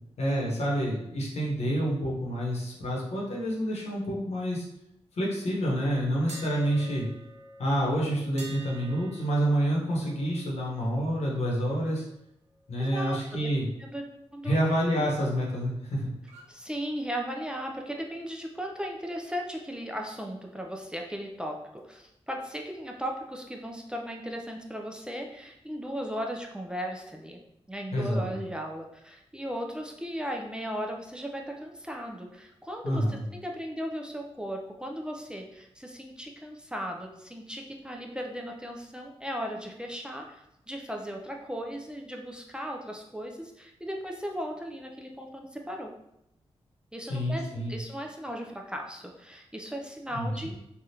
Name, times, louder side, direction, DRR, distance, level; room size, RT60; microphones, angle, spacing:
voice 1, 0.2-4.7 5.2-7.1 7.6-12.0 12.7-13.7 14.4-16.1 27.9-28.3 32.8-33.2 47.1-47.7 50.1-50.3, equal, 75° left, -4 dB, 1.0 m, -28 dB
sound 1, 6.3-12.2 12.5-12.7 16.2-16.6, right 2 dB, 85° right, 0.6 m, -49 dB
voice 2, 12.8-13.5 13.8-14.0 14.3-14.6 15.0-15.1 16.5-27.4 27.7-45.9 46.9-50.6, equal, 10° right, 1 dB, 0.4 m, -37 dB
3.4 x 2.4 x 2.7 m, 0.82 s
cardioid pair, 60°, 11 cm